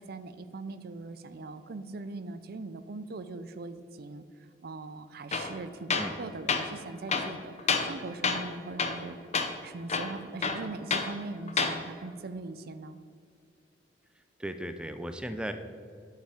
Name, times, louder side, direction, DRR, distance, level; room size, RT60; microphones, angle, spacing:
voice 1, 0.0-4.2 4.6-5.9 6.2-9.2 9.6-13.0, right 3 dB, 60° right, 12 dB, 0.5 m, -41 dB
Tools, 5.3-5.5 5.9-6.2 6.5-6.7 7.1-8.0 8.2-8.5 8.8-9.1 9.3-9.5 9.9-11.1 11.5-11.8, left 5 dB, 40° left, 0.8 m, -29 dB
voice 2, 14.4-15.5, right 1 dB, 5° right, 8 dB, 0.4 m, -36 dB
10.5 x 5.7 x 5.0 m, 2.2 s
head